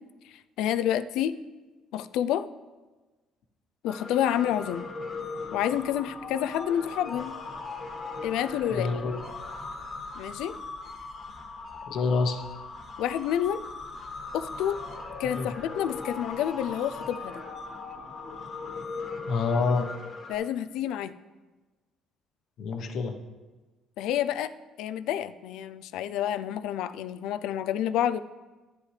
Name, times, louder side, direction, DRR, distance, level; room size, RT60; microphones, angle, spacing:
voice 1, 0.6-1.3 1.9-2.5 3.8-4.9 5.5-7.3 8.2-8.9 10.2-10.5 13.0-13.6 14.3-14.8 15.2-17.4 20.3-21.1 24.0-24.5 24.8-28.2, left 10 dB, 80° left, 12 dB, 0.4 m, -29 dB
sound 1, 3.9-20.3, left 3 dB, 45° left, 1.4 m, -39 dB
voice 2, 8.7-9.1 11.9-12.4 15.2-15.5 19.3-19.9 22.6-23.1, left 4 dB, 60° left, 5 dB, 1.0 m, -27 dB
11.5 x 9.7 x 3.3 m, 1.2 s
cardioid pair, 110°, 0 cm